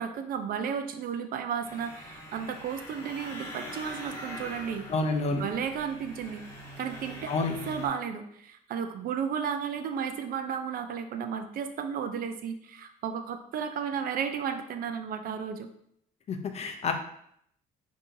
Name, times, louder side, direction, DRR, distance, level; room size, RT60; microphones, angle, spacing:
voice 1, 0.0-4.9 5.4-6.4 6.8-7.3 7.7-15.7, right 7 dB, 60° right, 8 dB, 0.5 m, -33 dB
sound 1, 1.6-7.9, equal, 15° left, 1.2 m, -43 dB
voice 2, 4.9-5.4 7.3-7.6 16.3-16.9, left 3 dB, 40° left, 5 dB, 0.5 m, -28 dB
5.4 x 2.7 x 2.6 m, 0.71 s
cardioid pair, 110°, 17 cm